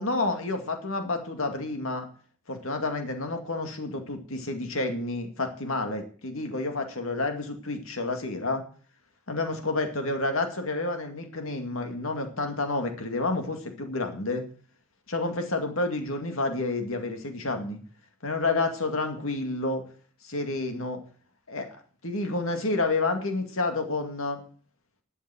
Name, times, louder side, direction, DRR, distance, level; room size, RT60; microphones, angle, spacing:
voice 1, 0.0-2.1 2.5-8.6 9.3-14.4 15.1-17.8 18.2-19.8 20.2-21.0 21.5-21.7 22.0-24.4, left 2 dB, 65° left, 5 dB, 2.2 m, -29 dB
11.5 x 7.2 x 7.6 m, 0.42 s
head